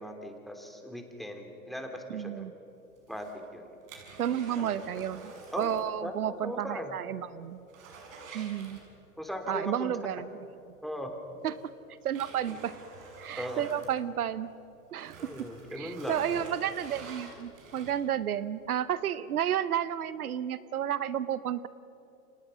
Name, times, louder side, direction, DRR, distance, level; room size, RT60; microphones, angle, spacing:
voice 1, 0.0-2.5 3.1-3.3 3.5-3.7 4.6-4.7 5.5-6.1 6.4-6.9 9.2-9.9 10.8-11.1 13.4-13.6 15.2-16.4, equal, ahead, 3 dB, 3.2 m, -38 dB
voice 2, 2.1-2.5 4.2-7.7 8.3-8.8 9.5-10.3 11.4-11.6 12.0-12.7 13.2-14.5 14.9-15.3 15.7-21.7, right 10 dB, 80° right, 16 dB, 0.9 m, -32 dB
sound 1, 3.0-5.9 6.2-6.3 6.8-6.9 7.2-9.3 10.7-10.8 11.4-14.6 14.9-18.2 18.8-18.9, right 4 dB, 65° right, 6.7 m, -48 dB
30.0 x 26.0 x 5.7 m, 2.8 s
hypercardioid pair, 110°, 43 cm